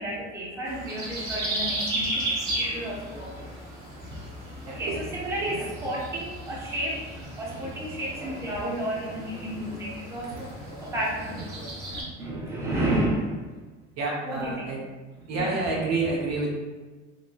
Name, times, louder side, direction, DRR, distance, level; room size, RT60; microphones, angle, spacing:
voice 1, 0.0-2.3 2.6-3.5 4.7-10.5 10.8-11.5 11.9-13.7 14.2-14.5 15.3-15.5, right 1 dB, 10° right, -6 dB, 0.7 m, -32 dB
sound 1, 0.7-12.0, right 1 dB, 35° right, 1.3 m, -35 dB
voice 2, 4.7-5.0 5.4-5.9 10.3-10.4 14.0-14.8 15.3-16.5, right 3 dB, 60° right, -2 dB, 0.8 m, -29 dB
3.1 x 3.0 x 2.2 m, 1.3 s
cardioid pair, 125°, 30 cm